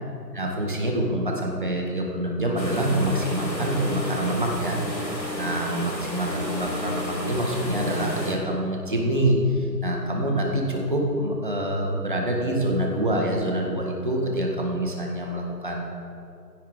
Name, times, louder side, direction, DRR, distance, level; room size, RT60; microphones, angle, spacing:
voice 1, 0.3-15.9, right 1 dB, 30° right, 0 dB, 2.0 m, -26 dB
sound 1, 2.6-8.3, left 1 dB, 85° left, 3.5 m, -32 dB
16.0 x 16.0 x 3.9 m, 2.5 s
figure-of-eight pair, 165°, 50 cm